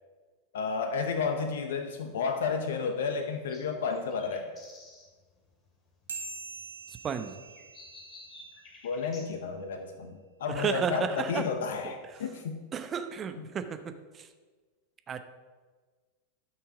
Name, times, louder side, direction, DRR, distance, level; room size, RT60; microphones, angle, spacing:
voice 1, 0.5-4.5 8.8-12.6 13.4-13.5, left 5 dB, 65° left, 7 dB, 0.9 m, -32 dB
sound 1, 0.6-9.3, left 2 dB, 30° left, 2.5 m, -55 dB
sound 2, 6.1-8.9, right 4 dB, 80° right, 1.4 m, -44 dB
voice 2, 7.0-7.4 10.5-11.4 11.8-11.9 12.7-13.8 14.1-14.3 15.1-15.2, right 6 dB, 30° right, 9 dB, 0.9 m, -32 dB
13.0 x 5.9 x 4.9 m, 1.4 s
figure-of-eight pair, 90°, 0 cm